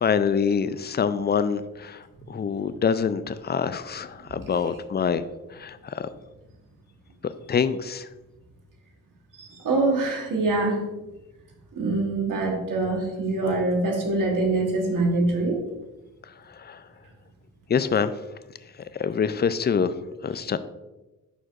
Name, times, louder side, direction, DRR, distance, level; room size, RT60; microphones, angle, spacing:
voice 1, 0.0-2.0 2.3-5.3 5.5-6.1 7.2-8.1 16.6-16.8 17.7-18.1 18.9-19.9 20.2-20.6, left 6 dB, 30° left, 13 dB, 0.4 m, -25 dB
voice 2, 9.3-10.8 11.7-15.6, right 2 dB, 75° right, 0 dB, 1.4 m, -24 dB
11.0 x 4.5 x 2.5 m, 1.1 s
cardioid pair, 75°, 32 cm